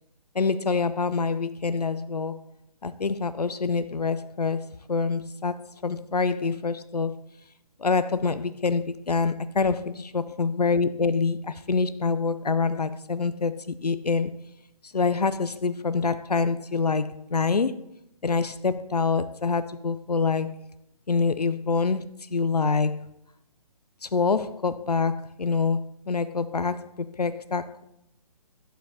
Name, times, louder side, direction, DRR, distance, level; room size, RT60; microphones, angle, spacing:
voice 1, 0.3-2.4 2.8-7.2 7.8-9.8 10.1-14.3 14.9-17.8 18.2-20.5 21.1-23.0 24.0-27.8, left 4 dB, 85° left, 0.4 m, -26 dB
8.8 x 7.1 x 2.8 m
figure-of-eight pair, 135°, 20 cm